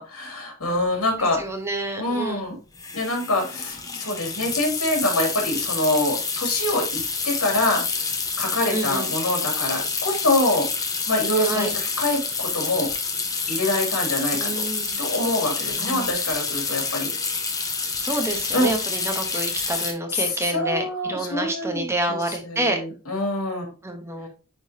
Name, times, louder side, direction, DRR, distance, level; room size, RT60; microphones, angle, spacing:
voice 1, 0.0-1.4 2.0-2.6 2.9-7.8 8.4-10.7 11.1-12.9 13.5-14.5 15.0-17.1 18.5-18.7 20.1-22.2 22.4-23.7, left 1 dB, 85° left, 1 dB, 2.8 m, -25 dB
sound 1, 0.8-0.9 1.1-1.4 2.7-19.9, left 4 dB, 15° left, 1.0 m, -28 dB
voice 2, 1.2-2.4 8.7-9.1 11.4-11.7 14.3-15.0 15.8-16.1 18.0-22.8 23.8-24.3, right 2 dB, 15° right, 4 dB, 1.1 m, -28 dB
9.5 x 3.9 x 2.8 m, 0.31 s
head